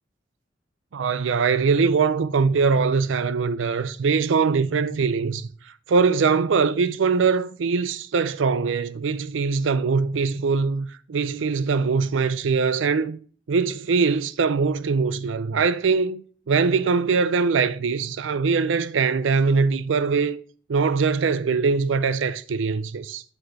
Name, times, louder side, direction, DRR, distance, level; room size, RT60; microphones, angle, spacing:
voice 1, 0.9-5.5 5.9-13.2 13.5-20.4 20.7-23.2, right 5 dB, 90° right, 0.5 m, -22 dB
7.8 x 4.3 x 4.5 m
head